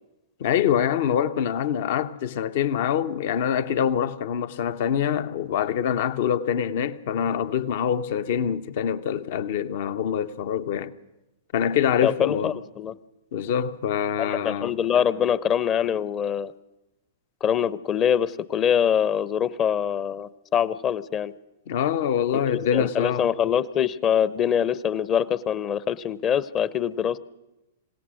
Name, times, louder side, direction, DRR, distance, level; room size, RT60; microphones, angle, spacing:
voice 1, 0.4-10.9 11.5-12.6 13.3-14.7 21.7-23.3, left 8 dB, 55° left, 0.9 m, -25 dB
voice 2, 12.0-12.9 14.2-16.5 17.4-21.3 22.5-27.2, left 8 dB, 30° left, 0.8 m, -24 dB
26.5 x 17.0 x 6.4 m
hypercardioid pair, 105°, 0 cm